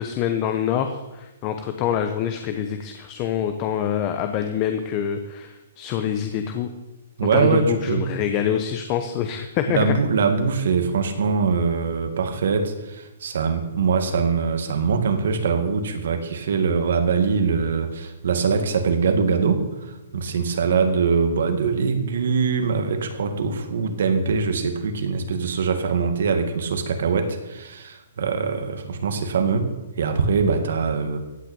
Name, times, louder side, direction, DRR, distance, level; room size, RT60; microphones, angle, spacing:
voice 1, 0.0-6.7 7.3-9.9, left 9 dB, 25° left, 7 dB, 0.9 m, -25 dB
voice 2, 7.2-8.0 9.7-29.7 30.0-31.2, right 5 dB, 65° right, 7 dB, 2.2 m, -23 dB
16.0 x 5.8 x 9.1 m, 1.0 s
hypercardioid pair, 165°, 0 cm